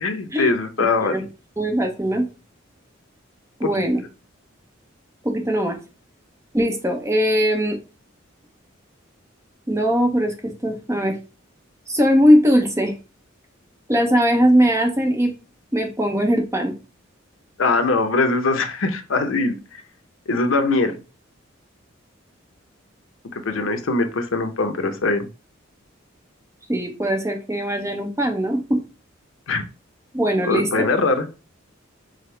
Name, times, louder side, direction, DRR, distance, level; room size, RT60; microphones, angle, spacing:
voice 1, 0.0-1.2 3.6-3.7 17.6-19.8 20.3-21.0 23.3-25.3 29.5-29.6 30.4-31.3, left 3 dB, 80° left, 7 dB, 0.7 m, -21 dB
voice 2, 1.6-2.3 3.6-4.0 5.2-5.8 6.5-7.8 9.7-11.2 11.9-12.9 13.9-15.3 15.7-16.7 26.7-28.8 30.1-30.9, equal, 15° right, 5 dB, 0.6 m, -20 dB
4.9 x 2.0 x 4.3 m, 0.32 s
head